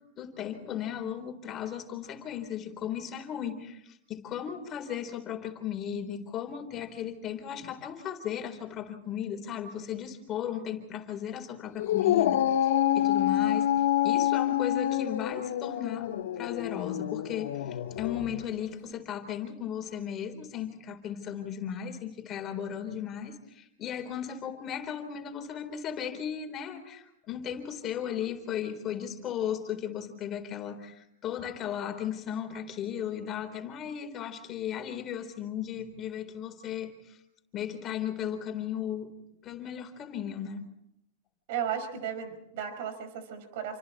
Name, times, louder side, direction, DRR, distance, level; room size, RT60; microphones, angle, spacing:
voice 1, 0.0-13.7 14.0-37.2 37.5-39.1 39.4-40.6, left 9 dB, 25° left, 6 dB, 4.0 m, -36 dB
Dog, 11.8-18.4, left 12 dB, 80° left, 1.8 m, -27 dB
voice 2, 41.5-43.8, right 8 dB, 60° right, 7 dB, 5.3 m, -35 dB
29.0 x 26.0 x 4.3 m, 0.79 s
supercardioid pair, 150°, 0 cm